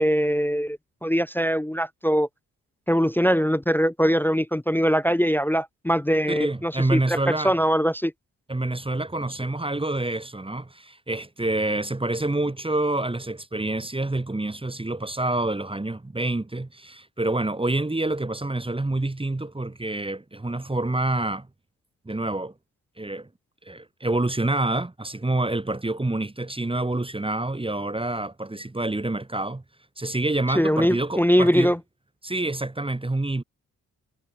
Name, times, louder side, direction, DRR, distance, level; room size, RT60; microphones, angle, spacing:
voice 1, 0.0-2.3 2.9-8.1 30.5-31.8, equal, 5° left, 0.4 m, -22 dB
voice 2, 6.3-7.5 8.5-21.5 22.0-22.5 23.0-23.3 23.6-29.6 30.0-31.7 32.2-33.4, right 2 dB, 15° right, 1.4 m, -27 dB
hypercardioid pair, 40°, 42 cm